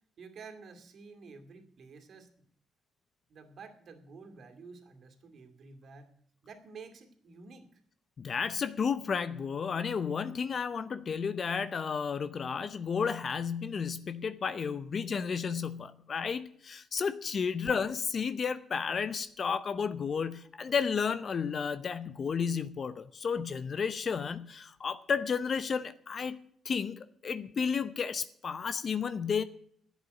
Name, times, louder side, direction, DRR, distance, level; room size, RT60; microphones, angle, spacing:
voice 1, 0.2-2.5 3.3-6.1 6.4-7.8, right 4 dB, 60° right, 2.4 m, -50 dB
voice 2, 8.2-29.4, left 6 dB, 45° left, 0.7 m, -32 dB
11.0 x 8.1 x 9.3 m
cardioid pair, 90°, 0 cm